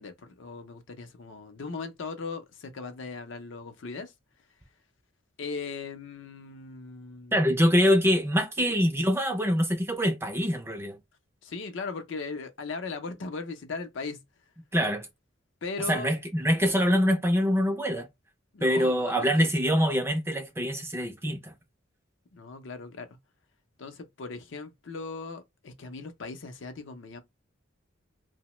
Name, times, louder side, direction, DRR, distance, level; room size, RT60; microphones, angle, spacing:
voice 1, 0.0-4.1 5.4-7.5 8.6-8.7 11.4-14.2 15.6-16.1 18.5-19.3 22.3-23.1 23.8-27.2, left 4 dB, 65° left, 0.5 m, -38 dB
voice 2, 7.3-11.0 14.7-15.1 15.9-18.1 18.6-21.5, equal, 10° right, 0.4 m, -24 dB
2.8 x 2.1 x 3.0 m
head